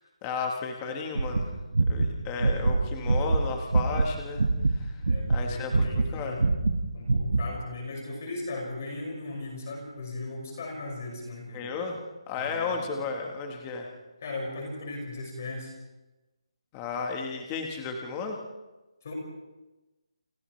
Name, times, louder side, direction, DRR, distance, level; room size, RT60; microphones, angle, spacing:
voice 1, 0.2-1.5 1.9-4.4 4.7-4.9 5.3-6.4 11.5-12.0 12.3-13.9 16.7-18.4, left 4 dB, 10° left, 3 dB, 1.3 m, -33 dB
sound 1, 1.1-4.1 4.3-6.8 7.1-7.5, right 3 dB, 75° right, 1.7 m, -24 dB
voice 2, 5.1-6.4 6.9-11.7 12.4-13.0 14.2-15.7 19.0-19.1, left 2 dB, 25° left, 0 dB, 5.6 m, -37 dB
29.5 x 29.0 x 3.2 m, 1.1 s
hypercardioid pair, 180°, 3 cm